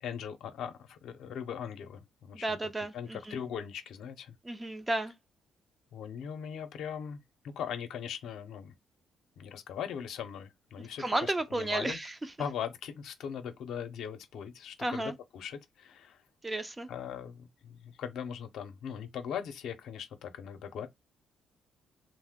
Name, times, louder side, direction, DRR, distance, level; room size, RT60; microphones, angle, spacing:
voice 1, 0.0-4.3 5.9-8.7 9.4-12.0 12.4-16.2 16.9-20.9, left 8 dB, 75° left, 0.6 m, -40 dB
voice 2, 2.3-3.4 4.4-5.1 10.8-12.1 14.8-15.2 16.4-16.9, right 2 dB, 20° right, 0.5 m, -33 dB
2.6 x 2.0 x 3.5 m
cardioid pair, 90°, 0 cm